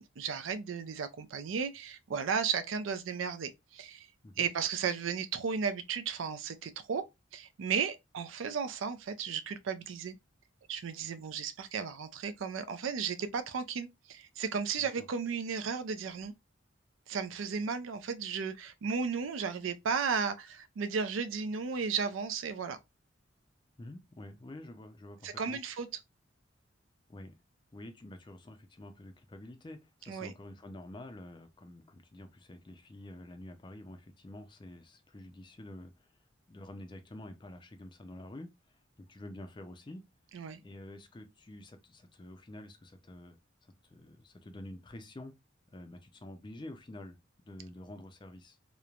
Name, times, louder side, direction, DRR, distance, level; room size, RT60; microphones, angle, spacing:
voice 1, 0.0-4.1 4.4-7.0 7.3-10.1 10.7-16.3 17.1-22.8 25.2-25.9 30.1-30.3 40.3-40.6, right 6 dB, 90° right, 0.4 m, -34 dB
voice 2, 23.8-25.6 27.1-27.3 27.7-36.1 36.5-40.0 40.6-43.4 43.9-45.3 45.7-47.2 47.4-48.6, left 1 dB, 25° left, 0.4 m, -48 dB
3.0 x 2.1 x 2.3 m
head